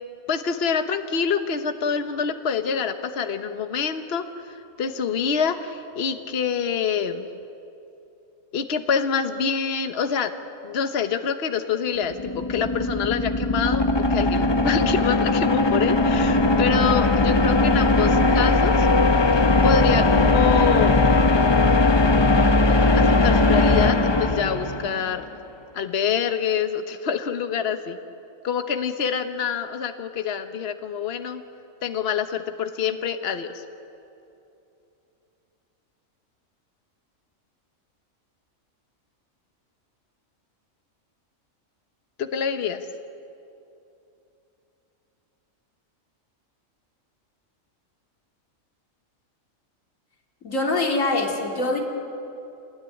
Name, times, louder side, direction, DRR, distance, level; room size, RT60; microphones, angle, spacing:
voice 1, 0.3-7.3 8.5-10.3 10.6-12.2 12.5-13.8 14.1-18.9 19.6-21.0 22.6-25.2 25.7-28.0 28.4-31.4 31.8-33.5 42.2-42.8, left 6 dB, 50° left, 8 dB, 1.3 m, -26 dB
sound 1, 12.0-25.2, left 2 dB, 25° left, 0.7 m, -19 dB
voice 2, 50.4-51.8, left 2 dB, 70° left, 0 dB, 3.3 m, -23 dB
26.5 x 20.5 x 9.8 m, 2.8 s
omnidirectional pair, 1.4 m